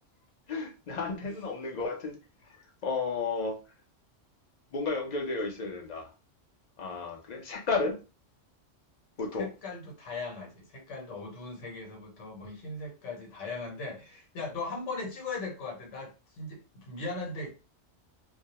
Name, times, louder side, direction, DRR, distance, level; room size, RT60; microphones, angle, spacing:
voice 1, 0.5-2.2 2.8-3.6 4.7-6.1 6.8-8.0 9.2-9.5, left 4 dB, 50° left, 0.5 m, -32 dB
voice 2, 9.4-17.5, left 3 dB, 80° left, 1.1 m, -39 dB
2.2 x 2.1 x 2.8 m
omnidirectional pair, 1.2 m